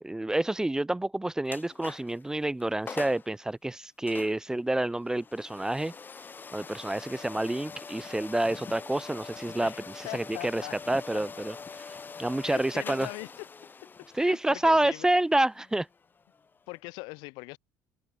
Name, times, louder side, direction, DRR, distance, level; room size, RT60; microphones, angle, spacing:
voice 1, 0.0-5.9 6.5-11.6 12.2-13.1 14.1-15.9, right 1 dB, 10° right, 1.0 m, -28 dB
sound 1, 1.5-2.2 2.6-2.7 2.9-3.3 4.1-16.8, left 5 dB, 25° left, 3.4 m, -44 dB
voice 2, 9.6-11.2 12.4-13.5 14.2-15.1 16.7-17.6, left 26 dB, 80° left, 2.2 m, -41 dB
supercardioid pair, 100°, 8 cm